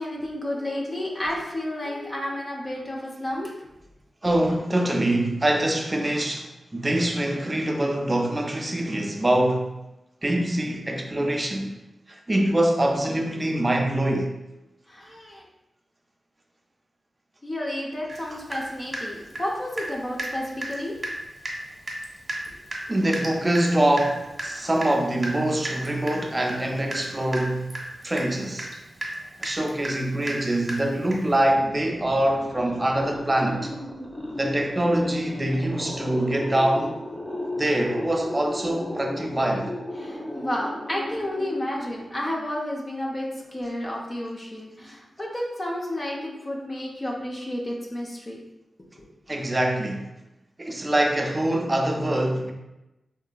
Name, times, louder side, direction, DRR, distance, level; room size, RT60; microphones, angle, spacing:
voice 1, 0.0-3.5 14.9-15.4 17.4-20.9 40.0-48.4 49.0-49.1, left 1 dB, 40° left, -2 dB, 0.5 m, -31 dB
voice 2, 4.2-9.7 10.2-11.7 12.1-14.3 22.9-27.7 28.0-28.7 29.4-33.7 34.4-36.9 37.6-39.7 49.3-50.1 50.6-52.5, right 1 dB, 30° right, 3 dB, 0.4 m, -24 dB
Water tap faucet / Drip, 18.1-18.2 18.5-19.9 20.2-20.3 20.6-20.8 21.0-21.2 21.4-21.6 21.9-31.3, right 1 dB, 45° right, 0.8 m, -34 dB
sound 1, 31.3-42.4, left 1 dB, 5° left, 0.8 m, -35 dB
2.8 x 2.5 x 2.2 m, 0.95 s
cardioid pair, 40°, 0 cm